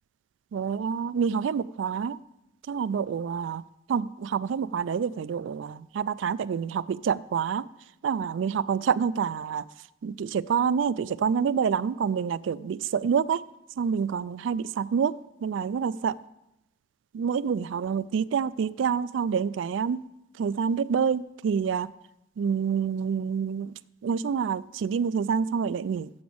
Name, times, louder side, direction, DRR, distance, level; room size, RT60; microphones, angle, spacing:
voice 1, 0.5-2.2 2.7-3.6 3.9-7.7 8.0-9.6 10.0-13.4 13.8-15.1 15.4-16.2 17.1-20.0 20.4-21.9 22.4-23.7 24.0-26.1, right 6 dB, 70° right, 19 dB, 0.3 m, -27 dB
7.9 x 6.0 x 7.0 m, 0.87 s
head